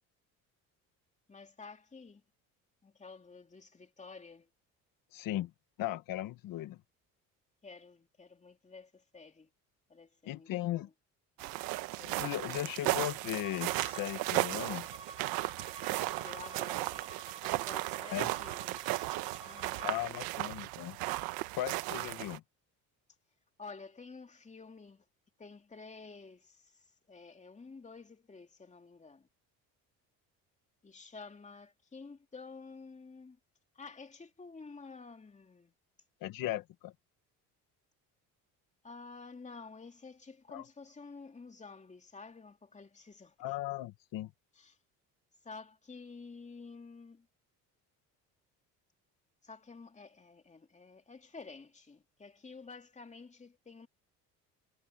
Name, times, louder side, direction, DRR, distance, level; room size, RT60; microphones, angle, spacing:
voice 1, 1.3-2.2 2.8-4.5 7.6-9.5 9.9-10.9 11.4-11.5 16.2-17.0 17.4-19.0 19.4-20.2 23.6-25.0 25.4-29.3 30.8-33.4 33.7-35.7 38.8-43.5 44.5-44.8 45.4-47.3 49.4-53.9, left 4 dB, 20° left, 2.7 m, -51 dB
voice 2, 5.1-5.5 5.8-6.8 10.2-10.9 12.0-14.9 18.1-18.3 19.8-21.0 21.6-22.4 36.2-36.9 40.5-40.6 43.4-44.3, left 14 dB, 70° left, 1.5 m, -37 dB
sound 1, 11.4-22.4, right 19 dB, 90° right, 1.1 m, -35 dB
Bowed string instrument, 13.4-19.9, right 3 dB, 15° right, 7.5 m, -50 dB
cardioid pair, 105°, 35 cm